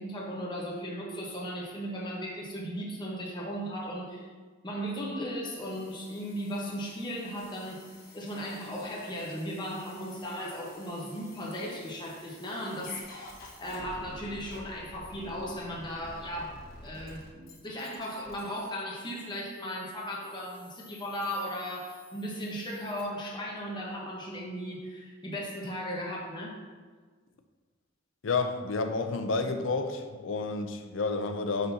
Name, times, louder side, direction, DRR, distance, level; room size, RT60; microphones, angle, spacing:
voice 1, 0.0-4.3 4.6-7.8 8.1-13.3 13.6-26.5, equal, 25° left, -3 dB, 1.2 m, -36 dB
sound 1, 5.5-23.0, left 2 dB, 55° left, 1.5 m, -52 dB
voice 2, 28.2-31.7, left 3 dB, 80° left, 7 dB, 0.5 m, -30 dB
9.8 x 4.0 x 2.8 m, 1.5 s
head